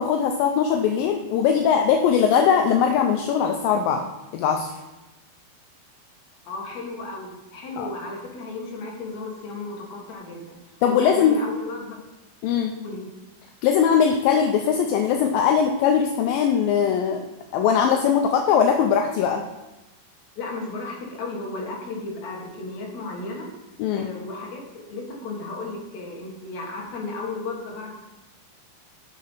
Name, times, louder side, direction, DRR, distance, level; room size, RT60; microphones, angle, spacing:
voice 1, 0.0-4.0 4.3-4.7 7.8-7.9 10.8-11.4 12.4-12.8 13.6-17.2 17.5-19.4 23.8-24.1, left 7 dB, 80° left, 4 dB, 2.1 m, -20 dB
voice 2, 6.5-10.6 10.9-12.0 12.8-13.0 20.4-23.5 23.9-24.6 24.9-28.0, left 3 dB, 55° left, -2 dB, 2.6 m, -34 dB
7.6 x 6.1 x 5.5 m, 1.0 s
omnidirectional pair, 4.6 m